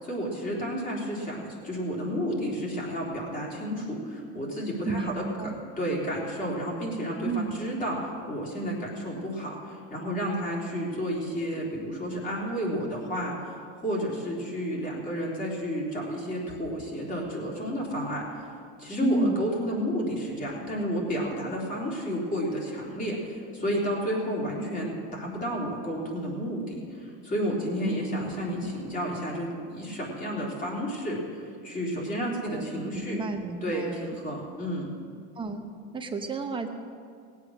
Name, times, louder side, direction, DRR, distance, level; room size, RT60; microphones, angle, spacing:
voice 1, 0.0-5.2 5.8-18.3 18.8-33.2 33.6-34.9, equal, 25° left, -3 dB, 3.4 m, -31 dB
voice 2, 4.8-5.6 7.2-7.5 19.0-19.4 27.8-28.7 32.5-34.2 35.4-35.6 35.9-36.7, right 3 dB, 15° right, 4 dB, 0.8 m, -32 dB
19.0 x 8.2 x 6.3 m, 2.3 s
supercardioid pair, 150°, 36 cm